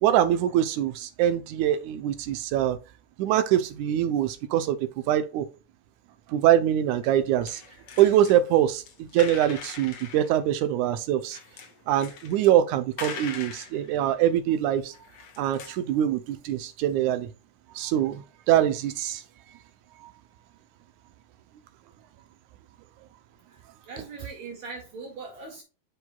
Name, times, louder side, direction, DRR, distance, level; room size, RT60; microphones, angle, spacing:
voice 1, 0.0-2.8 3.2-5.5 6.3-7.6 8.0-11.4 11.9-14.9 15.4-17.3 17.7-19.2, right 11 dB, 75° right, 1.8 m, -24 dB
sound 1, 7.0-8.4 8.8-10.4 11.3-12.5 12.9-14.5 14.8-15.9, left 6 dB, 55° left, 1.6 m, -42 dB
voice 2, 23.5-25.6, right 4 dB, 55° right, 3.0 m, -41 dB
7.8 x 6.4 x 2.3 m
omnidirectional pair, 4.1 m